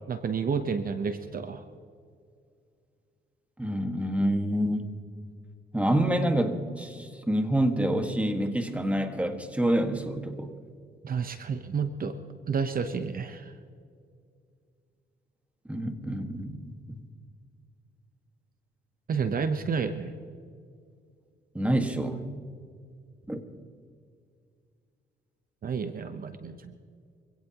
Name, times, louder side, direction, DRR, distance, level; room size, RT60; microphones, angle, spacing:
voice 1, 0.1-1.6 11.0-12.1 12.5-13.5 19.1-20.1 25.6-26.8, right 5 dB, 45° right, 9 dB, 0.9 m, -30 dB
voice 2, 3.6-4.9 5.7-10.5 15.7-17.0 21.5-22.2 23.3-23.4, right 1 dB, 5° right, 5 dB, 1.7 m, -27 dB
25.5 x 17.0 x 3.0 m, 2.2 s
cardioid pair, 90°, 20 cm